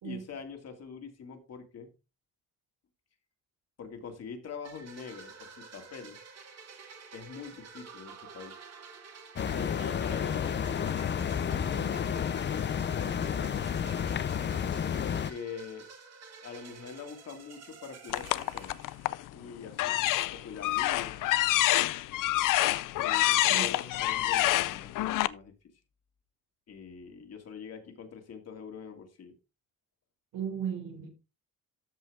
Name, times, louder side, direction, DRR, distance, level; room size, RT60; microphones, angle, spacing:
voice 1, 0.0-1.9 3.8-6.2 7.1-8.5 9.5-10.6 11.3-14.0 15.0-15.9 16.4-18.8 19.3-20.0 20.3-21.2 23.0-25.5 26.7-29.3, left 6 dB, 50° left, 2.5 m, -44 dB
sound 1, 4.6-19.4, right 5 dB, 50° right, 2.3 m, -50 dB
sound 2, 9.4-15.3, left 8 dB, 35° left, 0.6 m, -31 dB
sound 3, 18.1-19.2 19.7-25.3, left 16 dB, 75° left, 0.6 m, -27 dB
voice 2, 30.3-31.1, right 8 dB, 80° right, 4.5 m, -35 dB
13.5 x 5.5 x 3.6 m
cardioid pair, 130°, 32 cm